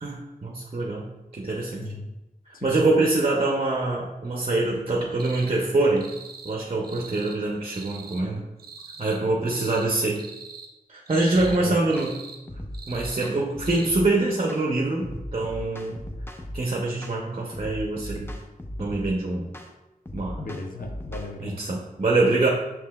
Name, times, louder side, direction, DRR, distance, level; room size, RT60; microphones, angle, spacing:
voice 1, 0.0-1.8 2.6-6.1 6.4-8.4 9.0-10.2 10.9-12.1 12.9-16.0 16.5-18.3 18.8-19.5 20.1-20.4 21.4-22.5, right 2 dB, 40° right, -2 dB, 0.6 m, -24 dB
voice 2, 1.7-2.1 2.5-2.8 11.3-11.8 20.4-21.6, left 2 dB, 65° left, 2 dB, 0.6 m, -36 dB
sound 1, 5.2-5.5 6.0-6.6 6.8-7.4 7.7-8.2 8.6-9.2 9.5-9.9 10.1-10.7 11.1-11.6 11.9-12.4 12.7-13.3 13.6-13.9, right 5 dB, 90° right, 0.5 m, -43 dB
sound 2, 11.3-11.6 12.0-12.1 12.5-14.1 14.5-14.7 15.0-16.6 17.0-17.2 17.5-19.1 19.5-19.7 20.1-21.3, equal, 15° left, 0.5 m, -37 dB
5.4 x 2.9 x 2.2 m, 1.0 s
wide cardioid pair, 50°, 15 cm